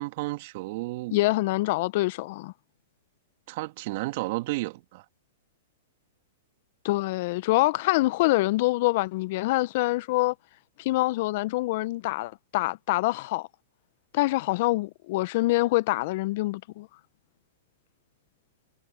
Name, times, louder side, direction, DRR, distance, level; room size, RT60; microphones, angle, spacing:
voice 1, 0.0-1.2 3.5-5.0, right 21 dB, 55° right, 1.9 m, -32 dB
voice 2, 1.1-2.5 6.8-10.3 10.8-13.5 14.1-16.9, left 19 dB, 55° left, 0.8 m, -25 dB
hypercardioid pair, 120°, 0 cm